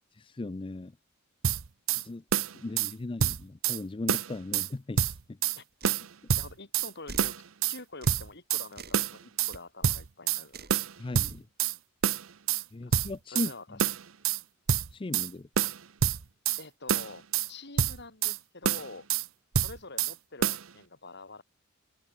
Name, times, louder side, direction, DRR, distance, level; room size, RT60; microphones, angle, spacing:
voice 1, 0.1-0.9 2.0-2.2 2.5-5.4 11.0-11.5 12.7-13.8 14.9-15.5, left 2 dB, 25° left, 0.5 m, -37 dB
sound 1, 1.4-2.0 2.3-2.9 3.2-3.8 4.1-4.7 5.0-5.6 5.8-6.9 7.2-7.8 8.1-8.7 8.9-9.5 9.8-10.4 10.7-11.8 12.0-12.6 12.9-13.5 13.8-14.4 14.7-15.3 15.6-16.6 16.9-17.5 17.8-18.4 18.6-19.3 19.5-20.1 20.4-20.6, right 8 dB, 75° right, 0.9 m, -27 dB
sound 2, 5.8-6.0 7.1-7.4 8.0-8.2 8.7-9.0 9.5-9.6 10.5-10.8, right 3 dB, 50° right, 3.5 m, -44 dB
voice 2, 6.4-10.8 12.8-12.9 13.3-13.9 15.6-15.7 16.6-19.1 19.6-21.4, left 3 dB, 55° left, 7.0 m, -46 dB
head